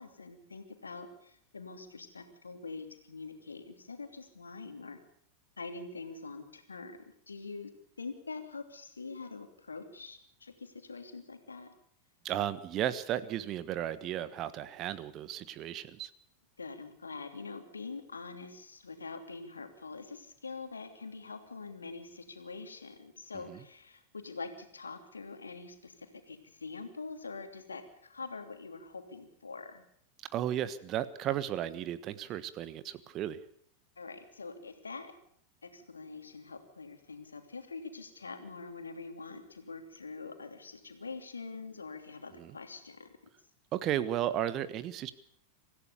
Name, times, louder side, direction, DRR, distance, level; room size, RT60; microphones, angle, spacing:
voice 1, 0.0-5.0 5.6-7.0 7.3-7.7 8.0-11.7 16.6-29.8 34.0-35.1 35.6-43.1, left 4 dB, 75° left, 6 dB, 3.0 m, -44 dB
voice 2, 12.2-16.1 23.5-23.6 30.3-33.4 42.3-42.5 43.7-45.1, right 11 dB, 35° right, 15 dB, 1.4 m, -34 dB
26.0 x 15.5 x 7.0 m, 0.65 s
figure-of-eight pair, 90°, 0 cm